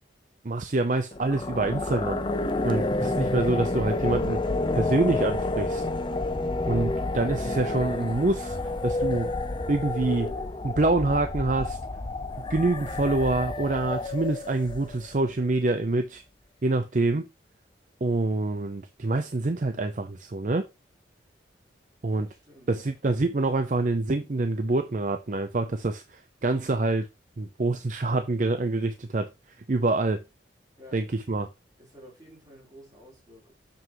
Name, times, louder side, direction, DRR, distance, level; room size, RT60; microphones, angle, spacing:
voice 1, 0.4-2.2 2.6-5.9 6.7-8.6 8.8-9.3 9.7-10.4 10.6-11.8 12.5-16.2 16.6-17.3 18.0-20.6 22.0-22.3 22.7-27.1 27.4-29.3 29.7-30.2 30.9-31.5, right 2 dB, 45° right, 0.5 m, -26 dB
sound 1, 1.1-15.2, left 2 dB, 25° left, 0.6 m, -29 dB
voice 2, 22.2-23.0 30.8-31.0 31.8-33.5, equal, 20° right, 3.4 m, -51 dB
7.1 x 6.0 x 3.0 m
head